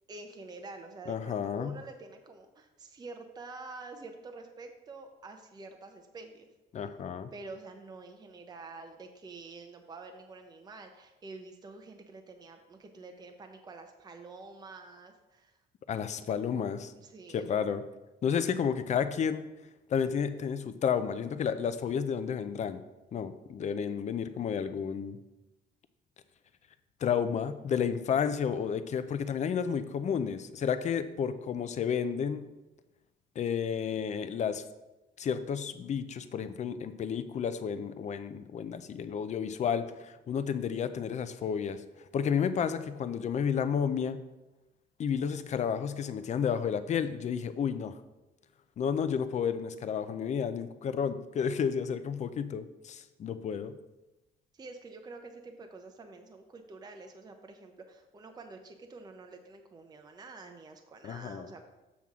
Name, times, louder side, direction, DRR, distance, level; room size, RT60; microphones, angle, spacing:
voice 1, 0.1-6.5 7.3-15.6 17.0-17.5 27.2-27.5 54.5-61.7, right 3 dB, 20° right, 5 dB, 0.6 m, -48 dB
voice 2, 1.1-1.8 6.7-7.3 15.9-16.9 17.3-17.8 18.2-19.4 19.9-22.8 23.1-25.2 27.0-32.4 33.4-34.6 35.2-41.8 42.1-44.2 45.0-48.0 48.8-53.7 61.0-61.5, left 7 dB, 35° left, 11 dB, 0.5 m, -31 dB
7.2 x 6.0 x 3.6 m, 1.0 s
cardioid pair, 125°, 20 cm